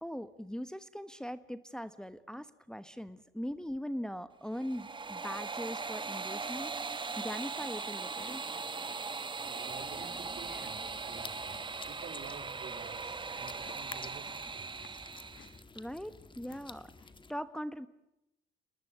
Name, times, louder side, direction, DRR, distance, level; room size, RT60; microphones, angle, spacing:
voice 1, 0.0-6.7 7.2-8.4 15.7-17.9, equal, 5° left, 11 dB, 1.1 m, -40 dB
sound 1, 4.5-15.6, right 4 dB, 25° right, 1.0 m, -39 dB
Chewing mastication, 6.3-17.0, left 9 dB, 70° left, 1.6 m, -63 dB
voice 2, 9.4-15.0, right 7 dB, 65° right, 9 dB, 4.0 m, -51 dB
sound 2, 9.7-17.3, left 3 dB, 25° left, 1.8 m, -52 dB
28.5 x 19.5 x 8.1 m, 0.86 s
cardioid pair, 90°, 20 cm